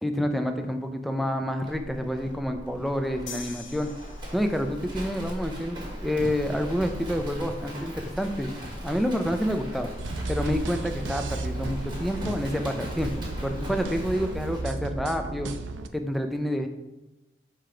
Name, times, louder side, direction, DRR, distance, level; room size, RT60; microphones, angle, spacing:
voice 1, 0.0-3.9 4.3-8.5 8.8-9.9 10.3-15.5 15.9-16.7, equal, ahead, 5 dB, 0.4 m, -28 dB
Livestock farm animals working animals, 1.6-14.7, equal, 25° right, 1.4 m, -38 dB
sound 1, 3.3-4.8, left 5 dB, 80° left, 0.7 m, -43 dB
sound 2, 10.0-15.9, right 2 dB, 85° right, 0.5 m, -34 dB
5.0 x 3.8 x 5.6 m, 1.0 s
head